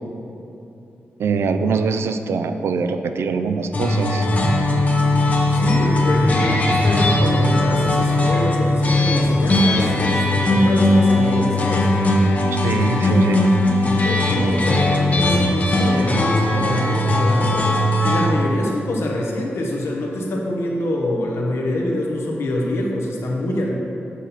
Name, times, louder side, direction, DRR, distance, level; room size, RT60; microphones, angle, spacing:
voice 1, 1.2-4.3 12.6-13.4, right 5 dB, 80° right, 8 dB, 0.4 m, -23 dB
sound 1, 3.7-18.3, left 1 dB, 35° left, 0.7 m, -18 dB
voice 2, 5.5-11.9 12.6-13.3 13.8-17.7 18.0-23.7, left 1 dB, 80° left, 0 dB, 1.0 m, -25 dB
7.3 x 4.1 x 5.7 m, 2.9 s
wide cardioid pair, 170°, 4 cm